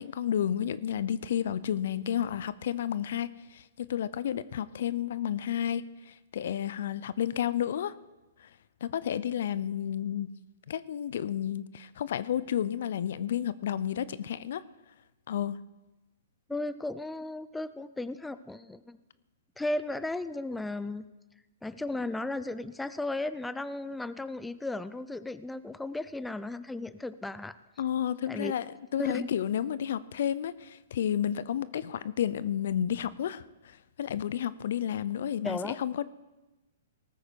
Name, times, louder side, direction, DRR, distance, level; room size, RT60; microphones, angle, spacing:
voice 1, 0.0-7.9 8.4-8.5 8.8-10.3 10.7-14.6 15.3-15.6 27.8-28.7 28.9-36.0, left 10 dB, 60° left, 18 dB, 0.6 m, -31 dB
voice 2, 16.5-19.0 19.6-21.0 21.6-27.6 28.3-28.5 29.0-29.3 35.4-35.8, left 2 dB, 5° left, 14 dB, 0.5 m, -35 dB
18.5 x 13.5 x 4.7 m, 1.1 s
hypercardioid pair, 120°, 0 cm